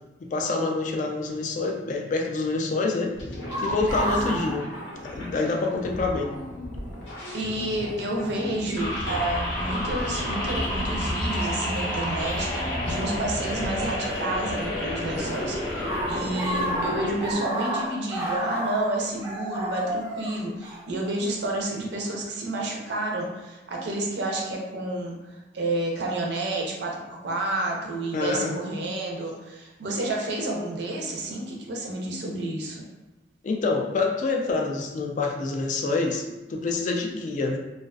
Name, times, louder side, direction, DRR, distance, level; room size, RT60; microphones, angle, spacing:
voice 1, 0.2-3.1 3.6-4.7 5.0-6.3 28.1-28.5 33.4-36.2 36.5-37.6, left 3 dB, 45° left, 1 dB, 0.3 m, -26 dB
sound 1, 3.1-13.9, left 1 dB, 80° left, 0.6 m, -37 dB
sound 2, 3.5-5.6 5.9-6.0 6.9-7.2 8.2-8.4 9.2-9.7 12.3-12.4 13.7-14.6 14.9-21.5, right 1 dB, 15° right, 0.5 m, -31 dB
voice 2, 7.3-32.8, right 2 dB, 65° right, -1 dB, 0.5 m, -30 dB
sound 3, 8.7-17.3, left 1 dB, 25° left, 0.7 m, -30 dB
2.4 x 2.3 x 2.3 m, 1.1 s
head